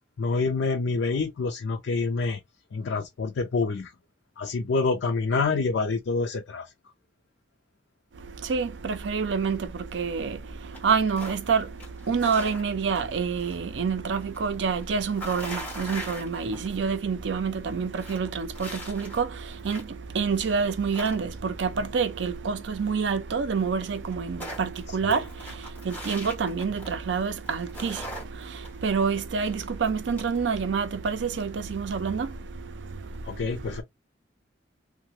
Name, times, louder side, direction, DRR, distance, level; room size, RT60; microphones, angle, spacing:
voice 1, 0.2-2.4 2.7-3.9 4.4-6.7 25.0-25.2 33.3-33.8, left 4 dB, 80° left, 0.4 m, -27 dB
voice 2, 8.1-33.8, right 5 dB, 80° right, 0.5 m, -28 dB
sound 1, 10.7-11.5 11.8-13.6 13.9-16.9 17.2-17.3 17.7-20.0 20.3-21.6 23.1-23.2 23.4-23.5 23.8-27.1 27.4-30.4, equal, 10° left, 1.3 m, -41 dB
2.8 x 2.1 x 2.9 m
head